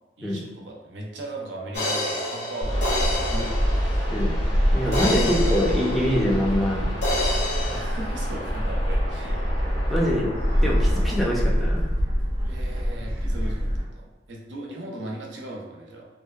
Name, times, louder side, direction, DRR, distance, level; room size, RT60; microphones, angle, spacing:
voice 1, 0.2-3.6 4.0-4.3 4.8-5.6 7.7-9.5 12.4-16.1, right 1 dB, 75° right, -1 dB, 0.5 m, -37 dB
sound 1, 1.7-4.3 4.9-6.7 7.0-7.8, left 1 dB, 65° left, 0.6 m, -29 dB
Gull seagull, 2.6-13.8, equal, 35° right, 0.7 m, -25 dB
sound 2, 2.7-11.2, equal, 85° left, 1.3 m, -37 dB
voice 2, 4.7-6.9 9.9-10.3 10.6-11.9, equal, ahead, -5 dB, 0.4 m, -24 dB
2.6 x 2.1 x 2.2 m, 1.1 s
head